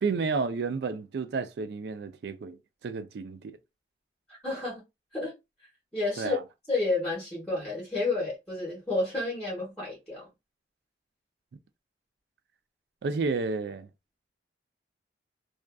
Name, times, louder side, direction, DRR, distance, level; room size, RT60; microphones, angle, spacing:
voice 1, 0.0-3.6 6.2-6.4 13.0-13.9, right 4 dB, 65° right, 0.3 m, -31 dB
voice 2, 4.3-4.8 5.1-5.3 5.9-6.4 6.7-10.3, left 2 dB, 5° left, 1.0 m, -30 dB
2.4 x 2.3 x 2.2 m
head